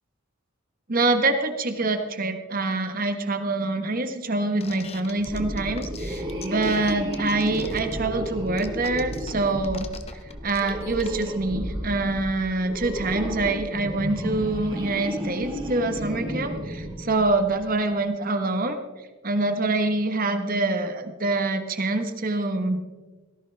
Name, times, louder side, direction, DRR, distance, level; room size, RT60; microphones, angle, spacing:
voice 1, 0.9-9.9 10.4-18.8 19.2-22.8, right 2 dB, 45° right, 7 dB, 1.2 m, -25 dB
sound 1, 4.6-11.3, left 5 dB, 30° left, 0.9 m, -42 dB
sound 2, 5.1-17.6, equal, 20° right, 2.8 m, -33 dB
17.5 x 14.5 x 3.4 m, 1.3 s
head